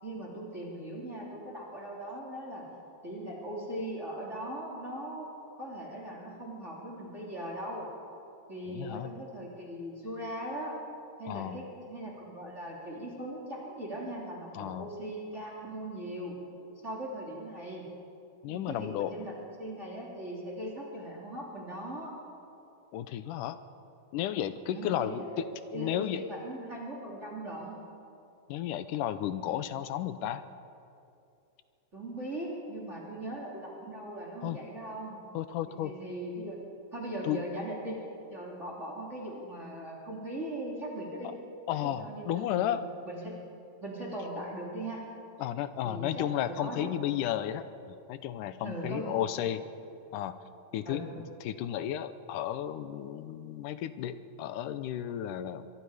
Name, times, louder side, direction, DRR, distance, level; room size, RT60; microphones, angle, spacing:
voice 1, 0.0-2.6 3.0-5.3 5.6-7.9 8.5-10.8 11.2-16.4 16.8-17.9 18.5-22.1 24.7-27.8 29.5-29.6 31.9-35.2 35.7-36.6 36.9-38.0 38.3-41.3 41.7-43.3 43.8-45.0 45.8-46.9 48.6-49.2 49.5-49.6 50.8-51.1, right 1 dB, 20° right, -4 dB, 3.1 m, -39 dB
voice 2, 8.7-9.1 11.3-11.6 14.5-14.9 18.4-19.1 22.9-23.6 24.1-26.2 28.5-30.4 34.4-34.6 35.3-35.9 37.2-37.4 41.7-42.9 44.4-44.5 45.4-49.6 50.1-50.4 50.7-55.7, left 11 dB, 85° left, 12 dB, 2.3 m, -33 dB
23.5 x 23.0 x 5.0 m, 2.7 s
omnidirectional pair, 3.7 m